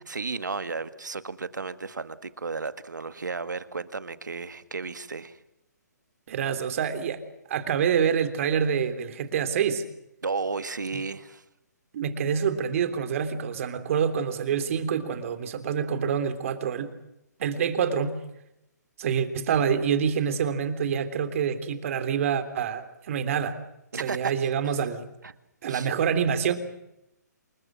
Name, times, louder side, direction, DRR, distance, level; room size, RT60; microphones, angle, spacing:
voice 1, 0.1-5.4 10.2-11.4 23.9-24.3 25.2-25.3 25.7-25.9, right 4 dB, 85° right, 12 dB, 1.9 m, -33 dB
voice 2, 6.3-7.2 7.5-9.8 11.9-16.9 17.4-18.1 19.0-23.6 24.0-25.1 25.6-26.6, right 7 dB, 50° right, 10 dB, 3.4 m, -26 dB
28.5 x 21.0 x 6.3 m, 0.87 s
hypercardioid pair, 140°, 10 cm